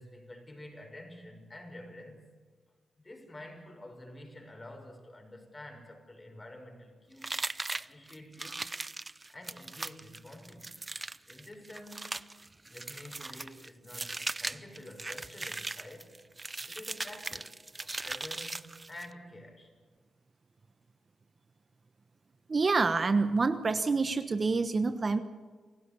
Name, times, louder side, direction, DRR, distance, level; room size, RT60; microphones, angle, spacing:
voice 1, 0.0-2.3 3.0-7.4 7.7-8.8 9.3-10.8 11.3-12.2 12.7-16.2 16.6-19.7, left 1 dB, 25° left, 3 dB, 6.3 m, -49 dB
sound 1, 7.2-19.1, right 2 dB, 25° right, 0.6 m, -39 dB
voice 2, 22.5-25.2, right 4 dB, 40° right, 9 dB, 1.1 m, -27 dB
28.5 x 16.0 x 7.0 m, 1.5 s
cardioid pair, 65°, 0 cm